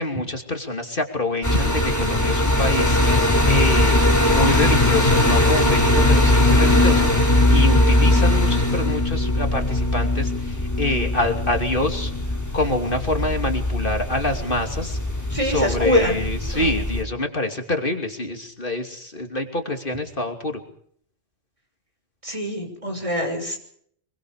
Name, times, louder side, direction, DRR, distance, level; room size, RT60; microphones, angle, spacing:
voice 1, 0.0-12.1 12.5-15.0 15.4-20.6, left 2 dB, 55° left, 5 dB, 3.0 m, -26 dB
sound 1, 1.4-17.0, left 1 dB, 15° left, 3.9 m, -20 dB
voice 2, 15.3-16.2 16.5-16.8 22.2-23.6, equal, 30° right, 3 dB, 6.3 m, -24 dB
25.0 x 23.5 x 5.1 m, 0.63 s
omnidirectional pair, 1.1 m